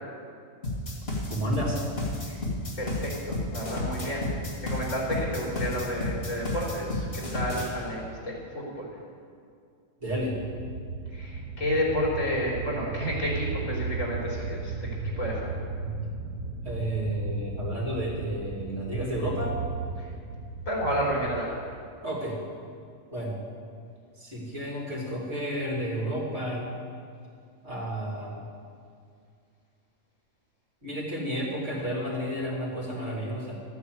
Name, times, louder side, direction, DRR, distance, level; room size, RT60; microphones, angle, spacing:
sound 1, 0.6-7.7, left 2 dB, 50° left, 2.6 m, -31 dB
voice 1, 1.3-1.8 10.0-10.4 16.6-19.5 22.0-22.4 23.1-23.4 24.2-26.7 27.6-28.4 30.8-33.5, equal, 55° right, -5 dB, 3.6 m, -31 dB
voice 2, 2.8-4.2 4.6-8.9 11.1-14.9 15.2-15.5 20.0-20.1 20.7-21.5, equal, 75° left, -4 dB, 4.0 m, -31 dB
sound 2, 10.1-21.5, right 3 dB, 85° right, 1.3 m, -35 dB
13.5 x 9.3 x 7.9 m, 2.3 s
omnidirectional pair, 1.4 m